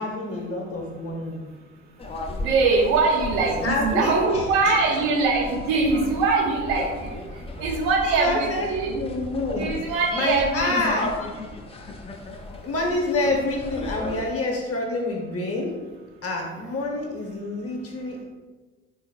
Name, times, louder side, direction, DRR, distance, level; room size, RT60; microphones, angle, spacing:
voice 1, 0.0-1.4 3.6-4.7 8.2-9.7 10.1-11.3 12.6-15.7 16.2-18.2, left 2 dB, 35° left, 0 dB, 1.0 m, -27 dB
sound 1, 2.0-14.2, left 2 dB, 15° left, 0.5 m, -35 dB
voice 2, 2.4-7.2 7.6-9.0 9.6-10.7, right 4 dB, 65° right, -1 dB, 0.9 m, -22 dB
4.0 x 3.8 x 2.3 m, 1.3 s
hypercardioid pair, 55°, 41 cm